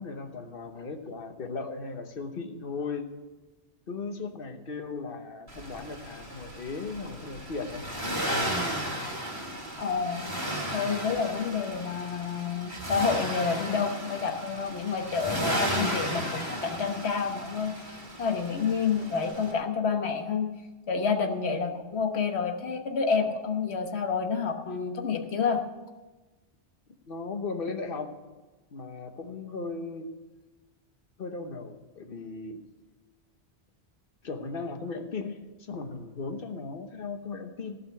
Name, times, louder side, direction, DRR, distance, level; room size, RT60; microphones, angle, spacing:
voice 1, 0.0-3.1 3.9-7.9 21.7-21.8 27.1-28.1 28.7-30.1 31.2-32.6 34.2-37.8, left 4 dB, 55° left, 7 dB, 1.2 m, -37 dB
Accelerating revving vroom, 5.5-19.5, equal, 20° right, 2.4 m, -34 dB
voice 2, 9.8-10.4 10.7-17.9 18.2-20.5 20.9-25.6, left 5 dB, 70° left, 5 dB, 1.4 m, -29 dB
16.0 x 5.6 x 7.9 m, 1.2 s
omnidirectional pair, 1.1 m